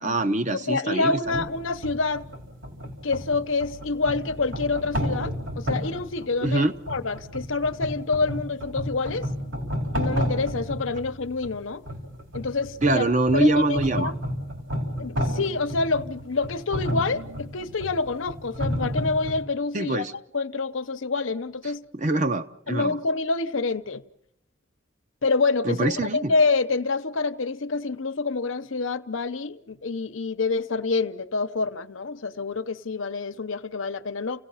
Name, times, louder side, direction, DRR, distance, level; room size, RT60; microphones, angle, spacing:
voice 1, 0.0-1.5 6.4-6.7 12.8-14.1 19.7-20.1 21.9-23.0 25.6-26.3, right 2 dB, 35° right, 0.8 m, -24 dB
voice 2, 0.5-2.3 3.0-9.3 9.9-11.8 12.3-13.1 13.3-14.2 15.0-20.1 20.3-21.9 22.7-24.0 25.2-34.4, left 3 dB, 80° left, 0.9 m, -27 dB
sound 1, 1.2-19.4, equal, 75° right, 4.7 m, -32 dB
30.0 x 17.5 x 5.7 m
head